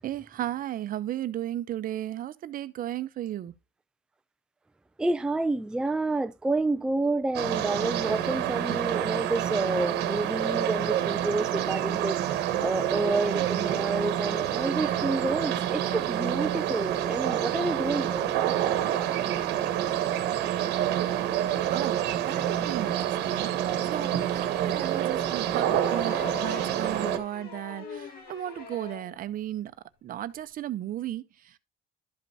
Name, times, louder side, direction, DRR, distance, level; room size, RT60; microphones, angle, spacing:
voice 1, 0.0-3.5 21.7-23.5 23.9-29.7 30.0-31.6, right 12 dB, 55° right, 0.7 m, -35 dB
voice 2, 5.0-18.3, right 2 dB, 5° right, 0.4 m, -29 dB
sound 1, 7.3-27.2, right 11 dB, 85° right, 1.1 m, -28 dB
sound 2, 25.6-29.2 30.5-30.6, left 4 dB, 65° left, 2.2 m, -41 dB
12.0 x 5.3 x 2.8 m
cardioid pair, 110°, 17 cm